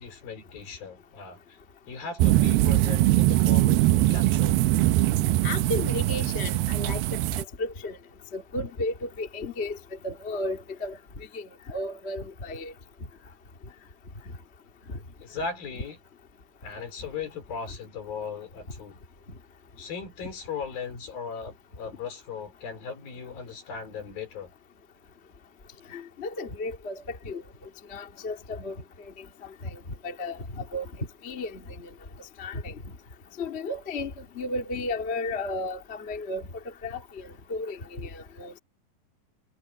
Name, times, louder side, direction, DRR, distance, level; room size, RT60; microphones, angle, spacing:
voice 1, 0.0-1.6 1.9-4.6 15.2-16.0 16.6-19.0 19.8-24.5, left 5 dB, 70° left, 5.9 m, -37 dB
sound 1, 2.2-7.4, right 15 dB, 90° right, 2.6 m, -22 dB
voice 2, 5.4-8.0 8.3-9.8 10.0-11.0 11.3-12.7 25.9-27.4 27.9-28.8 29.6-29.8 30.0-30.9 31.2-31.6 32.4-32.7 33.4-36.4 36.8-38.5, left 2 dB, 20° left, 1.8 m, -33 dB
omnidirectional pair, 4.4 m